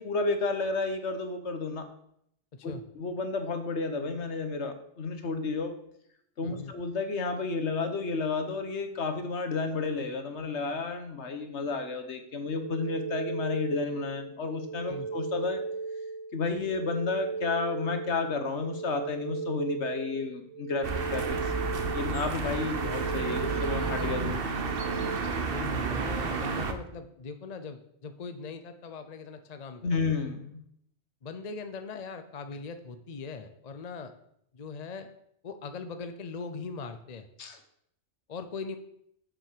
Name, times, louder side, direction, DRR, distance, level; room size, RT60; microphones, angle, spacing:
voice 1, 0.0-1.9 2.6-5.7 6.4-15.6 16.3-21.2 21.9-24.4 29.8-30.6 37.4-37.6, left 4 dB, 70° left, 7 dB, 1.4 m, -31 dB
voice 2, 2.5-2.8 6.4-6.7 14.9-15.1 25.5-30.0 31.2-34.1 34.5-35.1 35.4-37.3 38.3-38.8, left 4 dB, 40° left, 8 dB, 0.7 m, -40 dB
sound 1, 12.5-25.2, right 4 dB, 75° right, 0.9 m, -37 dB
sound 2, 20.8-26.7, right 4 dB, 55° right, 1.1 m, -31 dB
7.4 x 6.3 x 6.7 m, 0.73 s
omnidirectional pair, 1.2 m